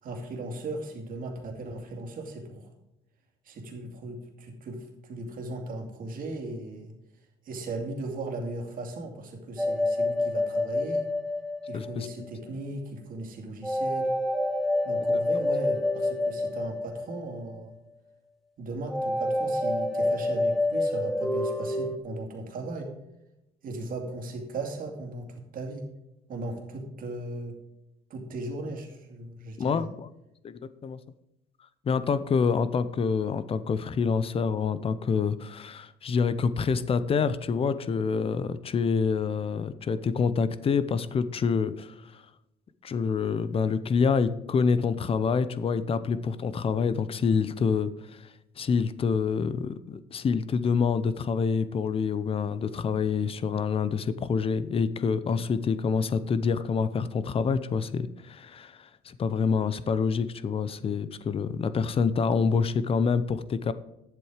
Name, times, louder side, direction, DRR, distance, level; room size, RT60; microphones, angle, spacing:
voice 1, 0.0-2.7 3.4-6.9 7.4-11.1 11.7-14.1 14.8-17.7 18.6-22.9 23.6-25.9 26.3-27.5 28.1-29.9, right 2 dB, 55° right, 2 dB, 2.4 m, -37 dB
sound 1, 9.6-12.3 13.6-17.5 18.9-22.0, left 1 dB, ahead, 0.9 m, -28 dB
voice 2, 11.7-12.1 15.0-15.1 29.6-30.1 30.4-31.0 31.8-42.2 42.8-63.7, left 5 dB, 35° left, 14 dB, 0.6 m, -27 dB
10.5 x 7.7 x 5.0 m, 0.89 s
cardioid pair, 110°, 17 cm